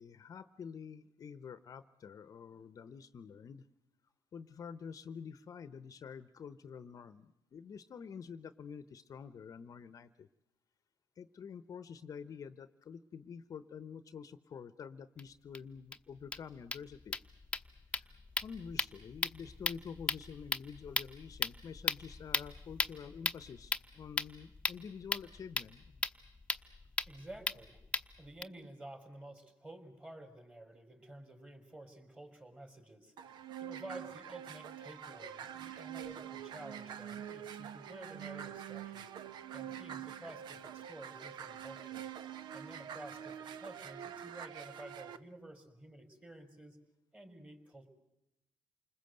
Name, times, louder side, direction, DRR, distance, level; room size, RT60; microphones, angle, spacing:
voice 1, 0.0-3.7 4.3-10.3 11.2-17.2 18.0-18.1 18.4-26.0, left 6 dB, 50° left, 13 dB, 0.9 m, -48 dB
sound 1, 15.2-15.3 15.5-15.6 15.9-16.0 16.2-28.4, left 3 dB, 15° left, 1.0 m, -38 dB
voice 2, 27.1-27.8 28.2-39.1 39.5-42.1 42.5-46.8 47.1-47.9, right 1 dB, 15° right, 6 dB, 4.7 m, -51 dB
sound 2, 33.2-45.2, right 9 dB, 75° right, 1.0 m, -45 dB
28.5 x 20.5 x 7.9 m, 0.85 s
cardioid pair, 95°, 8 cm